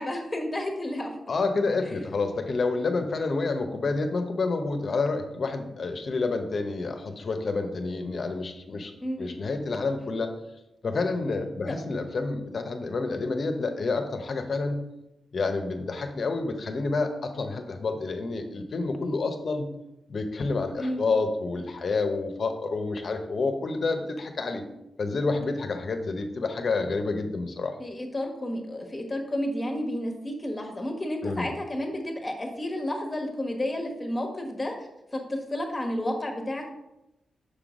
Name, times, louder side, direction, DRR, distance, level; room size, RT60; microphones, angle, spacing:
voice 1, 0.0-1.1 9.0-9.3 20.8-21.0 27.8-34.9 35.1-36.7, left 1 dB, 20° left, 3 dB, 1.2 m, -31 dB
voice 2, 1.3-8.9 9.2-10.3 10.8-14.8 15.3-19.7 20.1-24.6 25.0-27.7 31.2-31.5, left 3 dB, 50° left, 6 dB, 0.8 m, -29 dB
6.6 x 3.8 x 4.9 m, 0.90 s
cardioid pair, 100°, 0 cm